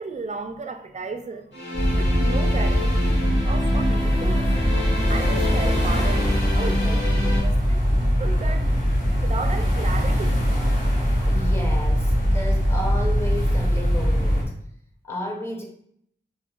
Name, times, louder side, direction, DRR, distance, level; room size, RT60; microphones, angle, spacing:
voice 1, 0.0-1.6 2.0-3.2 3.4-4.5 5.1-8.7 9.2-10.4, right 4 dB, 35° right, 7 dB, 0.4 m, -34 dB
sound 1, 1.5-7.4, left 1 dB, 70° left, 1.5 m, -29 dB
sound 2, 1.7-14.4, equal, 45° left, 1.4 m, -21 dB
voice 2, 11.3-14.5 15.0-15.6, left 1 dB, 15° left, 0 dB, 0.8 m, -32 dB
4.6 x 2.1 x 2.3 m, 0.69 s
cardioid pair, 50°, 20 cm